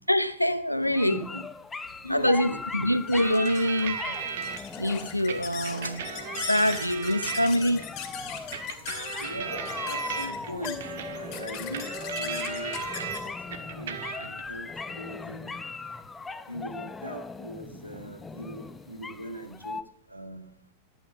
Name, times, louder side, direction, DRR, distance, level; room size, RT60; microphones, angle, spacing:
voice 1, 0.1-1.2 2.1-4.1 4.8-6.0 6.4-7.9, equal, 90° left, 0.8 m, -25 dB
sound 1, 0.8-19.8, left 4 dB, 15° left, 0.7 m, -39 dB
voice 2, 0.8-1.5 1.7-2.8 9.2-10.8 11.1-15.6 16.5-19.8 20.1-20.5, equal, 90° right, 1.7 m, -40 dB
sound 2, 1.9-14.8, left 8 dB, 40° left, 2.3 m, -41 dB
sound 3, 3.1-4.6 5.3-7.9 8.5-13.2 13.5-14.4, right 7 dB, 60° right, 1.6 m, -36 dB
13.0 x 9.1 x 7.0 m
figure-of-eight pair, 90°, 0 cm